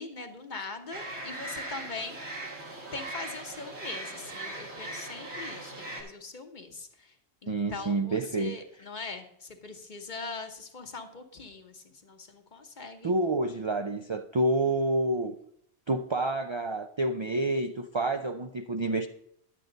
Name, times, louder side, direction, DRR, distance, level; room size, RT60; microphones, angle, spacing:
voice 1, 0.0-2.2 2.9-7.2 7.4-13.1, left 3 dB, 45° left, 1.1 m, -41 dB
sound 1, 0.9-6.0, right 1 dB, 85° right, 2.4 m, -39 dB
voice 2, 7.5-8.5 13.0-15.3 15.9-19.1, right 2 dB, 40° right, 0.4 m, -28 dB
10.5 x 8.4 x 3.9 m
omnidirectional pair, 1.1 m